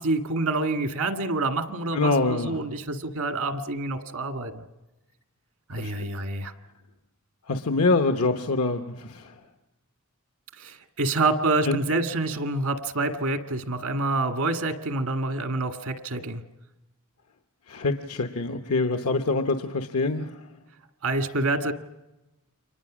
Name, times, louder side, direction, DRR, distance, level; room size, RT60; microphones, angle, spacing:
voice 1, 0.0-4.6 5.7-6.5 10.6-16.4 21.0-21.7, right 2 dB, 80° right, 6 dB, 1.8 m, -27 dB
voice 2, 1.9-2.6 5.8-5.9 7.5-9.3 11.7-11.8 17.7-20.4, left 3 dB, 85° left, 5 dB, 1.0 m, -25 dB
29.5 x 24.5 x 6.2 m, 1.0 s
head